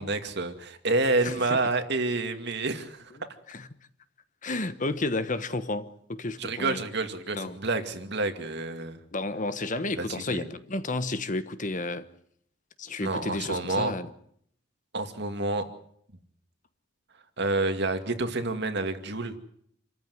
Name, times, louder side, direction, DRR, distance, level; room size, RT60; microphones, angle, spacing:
voice 1, 0.0-3.0 6.4-9.0 10.0-10.5 13.0-13.9 14.9-15.7 17.4-19.4, right 2 dB, 60° right, 2.3 m, -28 dB
voice 2, 1.2-1.6 3.5-3.7 4.4-6.8 7.3-7.5 9.1-12.1 12.8-14.1, left 2 dB, 40° left, 1.2 m, -31 dB
27.5 x 14.0 x 9.5 m
head